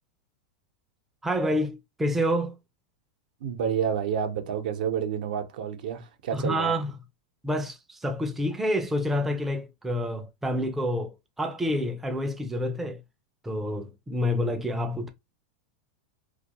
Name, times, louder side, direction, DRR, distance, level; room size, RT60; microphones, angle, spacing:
voice 1, 1.2-2.6 6.3-6.9 7.4-13.0 13.4-15.1, equal, 5° right, 0.3 m, -28 dB
voice 2, 3.4-6.8, right 8 dB, 75° right, 0.6 m, -29 dB
2.3 x 2.2 x 2.8 m
supercardioid pair, 135°, 5 cm